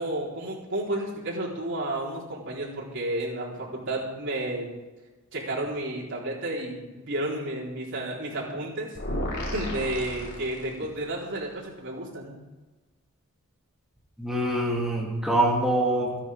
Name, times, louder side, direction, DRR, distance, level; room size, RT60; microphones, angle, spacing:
voice 1, 0.0-4.7 5.3-8.9 9.5-12.4, right 1 dB, 55° right, -4 dB, 4.3 m, -32 dB
sound 1, 8.9-11.1, left 1 dB, 50° left, 4.3 m, -33 dB
voice 2, 14.2-16.2, right 1 dB, ahead, -3 dB, 2.5 m, -25 dB
27.5 x 10.0 x 3.7 m, 1.2 s
head